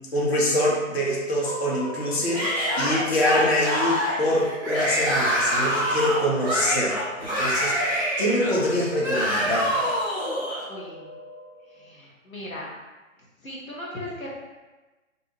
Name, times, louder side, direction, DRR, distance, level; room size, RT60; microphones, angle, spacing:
voice 1, 0.1-7.9 8.2-9.7, left 1 dB, 50° left, -4 dB, 0.8 m, -25 dB
sound 1, 1.4-11.9, equal, 30° left, 0.4 m, -42 dB
Yell / Screaming, 2.3-10.6, equal, ahead, 0.8 m, -26 dB
voice 2, 10.7-11.1 11.6-12.7 13.4-14.3, left 1 dB, 80° left, -5 dB, 1.0 m, -38 dB
2.6 x 2.1 x 2.7 m, 1.2 s
figure-of-eight pair, 135°, 40 cm